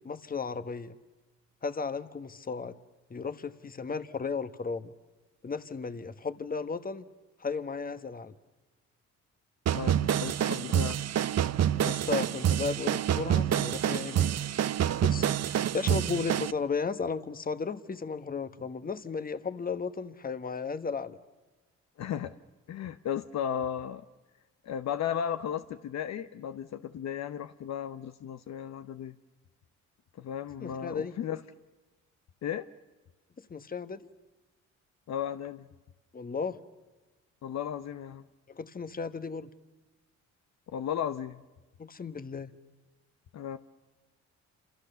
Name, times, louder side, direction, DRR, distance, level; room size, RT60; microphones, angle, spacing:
voice 1, 0.0-1.0 1.6-2.8 3.1-4.9 5.4-7.1 7.4-8.3 11.9-14.4 15.0-21.2 30.6-31.2 33.5-34.1 36.1-36.6 38.5-39.5 41.8-42.5, left 5 dB, 30° left, 12 dB, 1.3 m, -35 dB
voice 2, 9.7-11.0 22.0-22.4 22.7-24.0 24.6-29.2 30.2-31.4 32.4-32.7 35.1-35.7 37.4-38.2 40.7-41.4 43.3-43.6, left 9 dB, 60° left, 11 dB, 0.9 m, -35 dB
sound 1, 9.7-16.5, right 10 dB, 60° right, 0.8 m, -27 dB
28.5 x 27.5 x 6.9 m, 1.2 s
cardioid pair, 90°, 30 cm